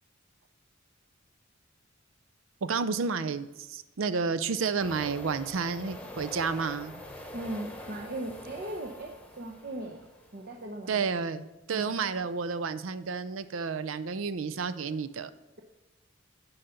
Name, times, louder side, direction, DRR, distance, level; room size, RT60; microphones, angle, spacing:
voice 1, 2.6-6.9 10.9-15.3, right 5 dB, 80° right, 12 dB, 0.5 m, -31 dB
sound 1, 4.8-10.6, left 1 dB, 5° left, 1.0 m, -45 dB
voice 2, 7.3-10.0 10.3-11.0 11.7-12.0, right 1 dB, 55° right, 0 dB, 0.8 m, -38 dB
10.0 x 5.6 x 5.2 m, 1.0 s
head